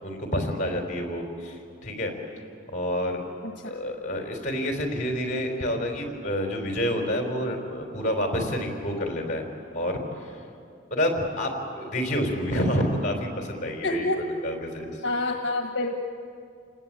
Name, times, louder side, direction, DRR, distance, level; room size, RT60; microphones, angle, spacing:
voice 1, 0.0-2.1 2.7-3.2 3.6-9.5 9.7-10.4 10.9-14.0 14.4-15.0, equal, 40° left, 3 dB, 4.4 m, -28 dB
voice 2, 13.8-14.4 15.0-15.9, left 2 dB, 65° left, 3 dB, 1.5 m, -27 dB
29.0 x 19.0 x 8.9 m, 2.4 s
head